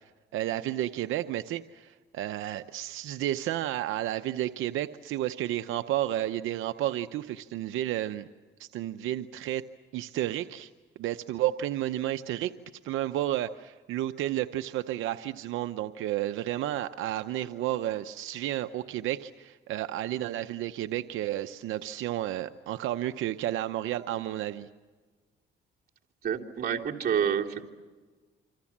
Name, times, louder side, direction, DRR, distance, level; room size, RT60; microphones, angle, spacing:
voice 1, 0.3-8.3 8.6-9.6 9.9-10.7 11.0-12.5 12.8-24.7, right 13 dB, 85° right, 9 dB, 0.8 m, -31 dB
voice 2, 26.2-27.7, right 8 dB, 50° right, -1 dB, 3.3 m, -28 dB
27.5 x 26.5 x 7.3 m, 1.4 s
cardioid pair, 90°, 20 cm